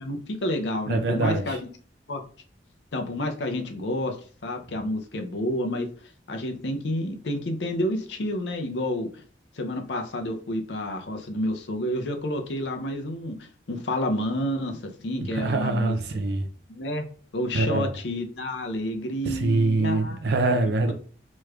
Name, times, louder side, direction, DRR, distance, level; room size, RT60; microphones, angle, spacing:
voice 1, 0.0-1.6 2.1-2.2 2.9-4.2 4.4-5.9 6.3-9.2 9.6-13.4 13.7-16.0 16.7-17.1 17.3-20.2, left 1 dB, 80° left, 0.6 m, -29 dB
voice 2, 0.9-1.6 15.3-16.5 17.5-17.9 19.2-20.9, right 2 dB, 65° right, 0.4 m, -24 dB
3.3 x 3.0 x 2.3 m
head